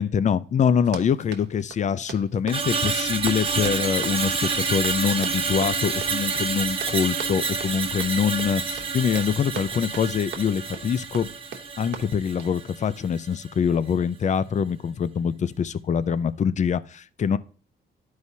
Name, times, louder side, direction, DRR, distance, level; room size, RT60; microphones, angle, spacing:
voice 1, 0.0-4.4 4.7-11.3 11.8-17.4, left 7 dB, 35° left, 0.5 m, -24 dB
Run, 0.8-12.6, right 7 dB, 60° right, 1.1 m, -40 dB
Screech, 2.5-12.8 13.2-13.4, right 4 dB, 25° right, 1.1 m, -28 dB
12.5 x 4.7 x 2.7 m
cardioid pair, 90°, 20 cm